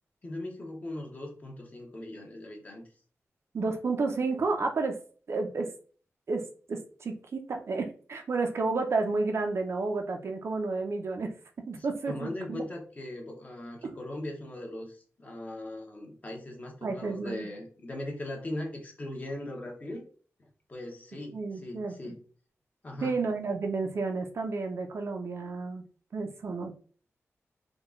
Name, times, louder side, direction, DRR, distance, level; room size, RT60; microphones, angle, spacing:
voice 1, 0.2-2.9 11.7-20.1 20.7-22.2 22.8-23.2, left 1 dB, 30° left, 1 dB, 0.9 m, -39 dB
voice 2, 3.5-5.0 5.3-5.7 6.3-11.3 11.7-12.6 13.8-13.9 16.8-17.5 21.3-22.1 23.0-25.8 26.1-26.7, right 3 dB, 60° right, 4 dB, 0.6 m, -31 dB
3.7 x 2.3 x 3.6 m, 0.42 s
wide cardioid pair, 170°, 5 cm